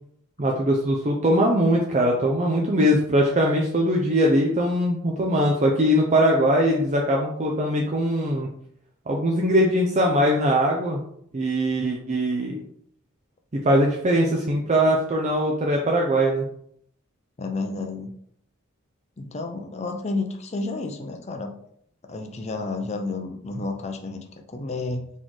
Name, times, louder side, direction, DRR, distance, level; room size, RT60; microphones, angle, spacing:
voice 1, 0.4-8.5 9.1-11.0 11.3-12.6 13.6-16.5, equal, 35° right, -1 dB, 0.5 m, -21 dB
voice 2, 17.4-18.1 19.2-21.5 22.0-25.1, left 3 dB, 30° left, 4 dB, 0.5 m, -31 dB
4.2 x 3.0 x 3.8 m, 0.68 s
head